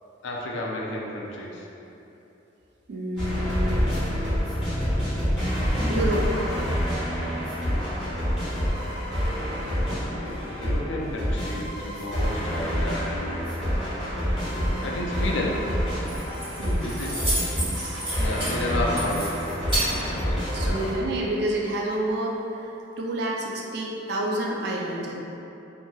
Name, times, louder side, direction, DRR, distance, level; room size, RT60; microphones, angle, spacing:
voice 1, 0.2-1.7 9.9-13.6 14.5-15.7 16.8-17.2 18.2-19.5 20.3-20.9, left 1 dB, 70° left, -2 dB, 0.4 m, -32 dB
voice 2, 2.9-3.7 5.5-6.6 16.6-16.9 17.6-18.0 19.9-25.2, right 1 dB, 55° right, -2 dB, 0.4 m, -29 dB
sound 1, 3.2-20.9, equal, 5° right, 1.0 m, -27 dB
Keys jangling, 15.8-20.9, right 1 dB, 25° right, 1.1 m, -32 dB
3.0 x 2.6 x 2.2 m, 3.0 s
head